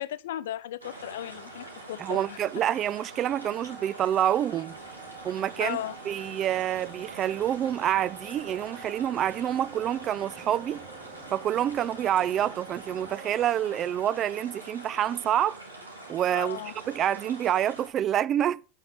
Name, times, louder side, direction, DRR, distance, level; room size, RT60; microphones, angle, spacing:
voice 1, 0.0-2.4 5.6-5.9 16.3-16.7, left 12 dB, 65° left, 0.6 m, -36 dB
sound 1, 0.8-17.9, right 2 dB, 85° right, 3.5 m, -44 dB
voice 2, 2.0-4.8 5.2-5.8 6.1-10.9 11.3-15.6 16.1-18.6, right 11 dB, 35° right, 0.4 m, -27 dB
sound 2, 3.3-13.5, right 5 dB, 20° right, 3.8 m, -51 dB
sound 3, 4.7-13.2, right 7 dB, 50° right, 2.1 m, -52 dB
9.5 x 5.5 x 5.9 m
figure-of-eight pair, 85°, 0 cm